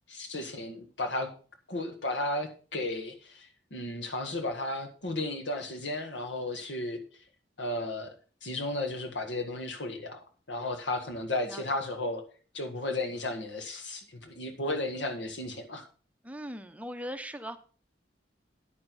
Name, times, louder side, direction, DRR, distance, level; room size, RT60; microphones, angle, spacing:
voice 1, 0.1-1.3 1.7-7.0 7.6-8.1 8.4-10.2 10.5-12.2 12.5-15.9, left 2 dB, 90° left, 6 dB, 1.7 m, -34 dB
voice 2, 16.2-17.6, equal, 10° right, 9 dB, 0.7 m, -39 dB
9.8 x 9.3 x 4.1 m, 0.38 s
head